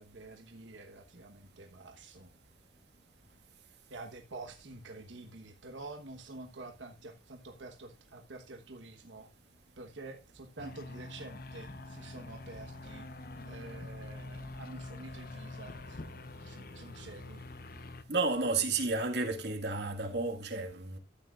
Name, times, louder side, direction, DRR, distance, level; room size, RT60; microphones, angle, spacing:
voice 1, 0.0-2.3 3.9-9.3 9.8-17.5, right 2 dB, 85° right, 1.2 m, -48 dB
sound 1, 10.6-18.0, left 2 dB, 50° left, 0.8 m, -45 dB
voice 2, 18.1-21.0, right 3 dB, 65° right, 1.7 m, -32 dB
13.5 x 8.9 x 2.4 m
head